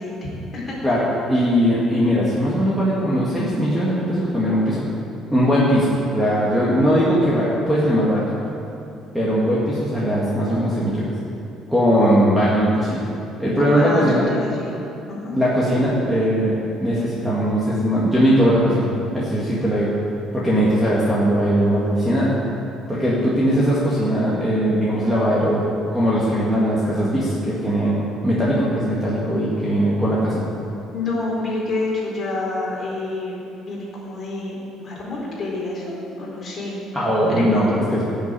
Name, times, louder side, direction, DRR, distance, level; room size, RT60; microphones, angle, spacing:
voice 1, 0.0-0.9 1.3-1.5 13.6-14.7 15.1-15.4 23.1-23.4 30.9-36.8 37.3-37.8, left 2 dB, 25° left, -5 dB, 4.2 m, -28 dB
voice 2, 0.8-4.8 5.3-5.9 6.1-8.2 9.1-11.1 11.7-13.0 13.4-14.3 15.3-18.9 19.1-19.9 20.3-22.3 22.9-25.6 25.9-30.4 36.9-38.0, equal, 5° right, -7 dB, 1.9 m, -19 dB
16.5 x 7.1 x 9.1 m, 2.7 s
cardioid pair, 175°, 0 cm